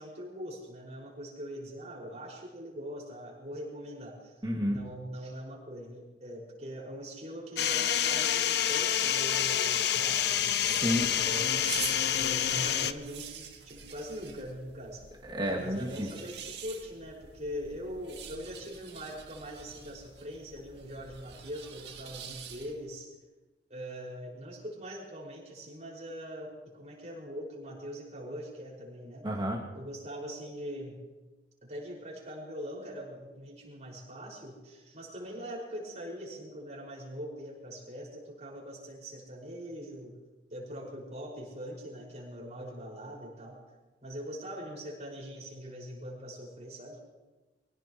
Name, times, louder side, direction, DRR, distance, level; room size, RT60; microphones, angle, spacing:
voice 1, 0.0-4.3 4.7-11.6 12.2-15.0 15.6-23.1 23.7-29.3 29.7-31.0 31.6-40.1 40.5-43.6 44.0-47.0, equal, 40° right, -4 dB, 5.6 m, -42 dB
voice 2, 4.4-4.8 10.7-11.1 15.2-16.1 29.2-29.6, equal, 25° right, -2 dB, 2.4 m, -31 dB
sound 1, 7.6-12.9, left 10 dB, 70° left, 0.6 m, -28 dB
sound 2, 10.3-22.9, right 8 dB, 70° right, 1.9 m, -46 dB
25.5 x 17.0 x 3.1 m, 1.2 s
head